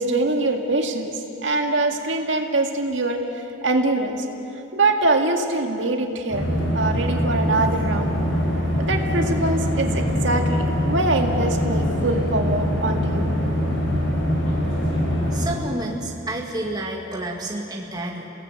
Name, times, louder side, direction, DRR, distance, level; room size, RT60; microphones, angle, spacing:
voice 1, 0.0-3.2 3.6-4.3 4.7-6.4 6.7-8.2 8.8-13.3, right 2 dB, 70° right, 4 dB, 2.0 m, -23 dB
sound 1, 6.3-15.5, equal, 75° left, 5.8 m, -23 dB
voice 2, 15.3-18.3, right 1 dB, 20° right, 0 dB, 1.8 m, -30 dB
28.0 x 18.0 x 7.8 m, 2.8 s
head